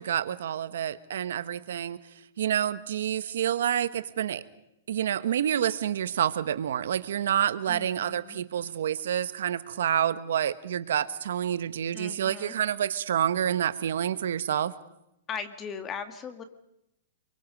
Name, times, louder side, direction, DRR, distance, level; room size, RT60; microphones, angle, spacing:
voice 1, 0.0-2.0 2.4-4.4 4.9-14.7, right 9 dB, 75° right, 14 dB, 1.2 m, -28 dB
voice 2, 7.7-8.4 11.9-12.5 15.3-16.4, left 6 dB, 20° left, 9 dB, 1.9 m, -38 dB
27.0 x 24.0 x 5.4 m, 0.85 s
hypercardioid pair, 155°, 0 cm